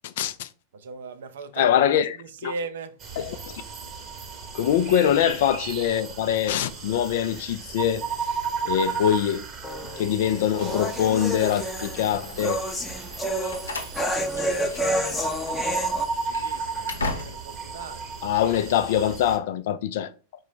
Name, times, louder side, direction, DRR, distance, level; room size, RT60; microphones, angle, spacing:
voice 1, 0.0-0.5 1.6-2.2 2.4-2.5 3.2-3.6 4.5-8.1 8.6-9.4 10.0-12.6 18.2-20.1, left 10 dB, 55° left, 0.4 m, -23 dB
voice 2, 0.7-3.0 15.6-18.2, right 4 dB, 60° right, 0.5 m, -39 dB
sound 1, 3.0-19.4, right 5 dB, 25° right, 0.9 m, -34 dB
sound 2, 9.6-16.0, equal, 10° left, 0.7 m, -29 dB
Slam, 13.1-15.1 15.4-15.6 16.1-17.7, left 2 dB, 75° left, 0.8 m, -35 dB
4.9 x 2.2 x 4.5 m
figure-of-eight pair, 90°, 0 cm